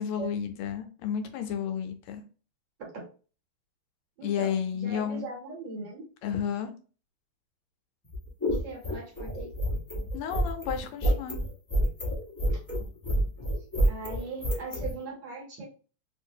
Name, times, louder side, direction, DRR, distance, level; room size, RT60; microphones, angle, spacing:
voice 1, 0.0-2.2 4.2-5.3 6.2-6.7 10.1-11.4, left 8 dB, 80° left, 7 dB, 1.4 m, -32 dB
voice 2, 4.2-6.0 8.5-9.5 12.5-12.6 13.9-15.6, right 3 dB, 60° right, 0 dB, 1.6 m, -40 dB
sound 1, 8.0-14.9, right 1 dB, 25° left, 0.4 m, -28 dB
3.2 x 3.1 x 2.6 m, 0.37 s
omnidirectional pair, 2.4 m